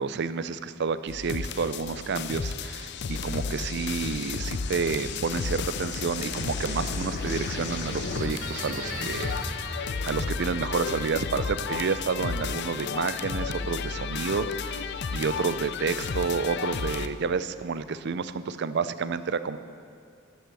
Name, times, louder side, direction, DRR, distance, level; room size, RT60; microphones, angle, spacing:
voice 1, 0.0-19.6, right 5 dB, 60° right, 13 dB, 0.5 m, -30 dB
sound 1, 1.1-17.1, left 5 dB, 60° left, 0.5 m, -33 dB
sound 2, 4.9-15.2, right 1 dB, 40° right, 1.7 m, -42 dB
12.5 x 8.0 x 6.9 m, 2.4 s
head